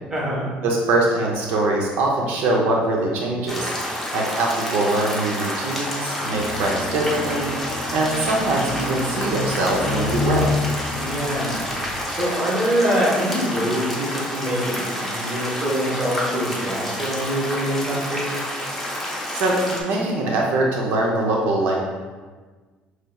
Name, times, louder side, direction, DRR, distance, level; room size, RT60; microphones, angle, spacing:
voice 1, 0.1-0.5 10.9-11.6 12.1-18.3, equal, 15° right, -5 dB, 1.0 m, -24 dB
voice 2, 0.6-3.7 4.1-10.5 19.3-21.7, right 2 dB, 70° right, -1 dB, 0.6 m, -22 dB
sound 1, 3.5-19.8, equal, 5° left, 0.6 m, -29 dB
Brass instrument, 6.2-12.0, equal, 30° left, 1.1 m, -38 dB
sound 2, 6.6-12.1, left 4 dB, 85° left, 0.5 m, -29 dB
5.4 x 3.2 x 2.3 m, 1.4 s
cardioid pair, 175°, 3 cm